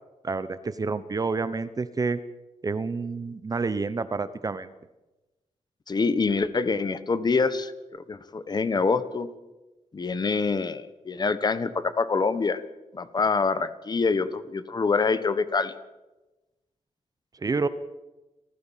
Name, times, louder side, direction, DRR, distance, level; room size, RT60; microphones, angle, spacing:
voice 1, 0.2-2.2 2.6-4.7 17.3-17.7, right 4 dB, 30° right, 14 dB, 1.0 m, -28 dB
voice 2, 5.9-7.7 8.1-9.3 9.9-12.6 12.9-15.7, left 4 dB, 35° left, 12 dB, 1.4 m, -25 dB
27.0 x 15.0 x 7.4 m, 1.1 s
wide cardioid pair, 145°, 13 cm